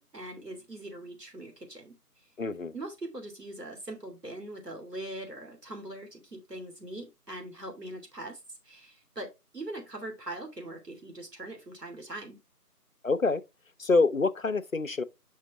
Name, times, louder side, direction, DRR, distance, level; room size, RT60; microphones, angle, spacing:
voice 1, 0.0-2.0 2.7-8.4 8.6-12.4, right 1 dB, 85° right, 2.9 m, -41 dB
voice 2, 2.4-2.7 13.0-13.4 13.8-15.0, left 3 dB, 60° left, 0.6 m, -26 dB
6.4 x 5.4 x 3.6 m
figure-of-eight pair, 170°, 47 cm